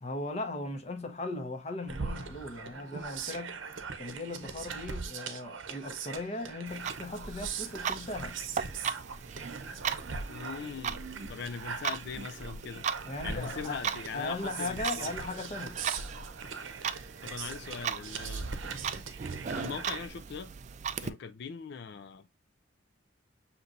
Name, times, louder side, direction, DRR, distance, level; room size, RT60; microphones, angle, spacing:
voice 1, 0.0-3.6 4.0-8.4 13.0-13.8 14.1-15.7, left 2 dB, 35° left, 0.8 m, -38 dB
sound 1, 1.9-20.1, right 5 dB, 70° right, 0.7 m, -41 dB
Clock, 6.7-21.1, right 7 dB, 35° right, 0.3 m, -38 dB
voice 2, 10.3-11.0 11.3-12.9 13.2-15.2 17.2-18.5 19.4-20.5 21.0-22.3, left 6 dB, 55° left, 0.4 m, -40 dB
6.6 x 2.9 x 2.5 m
head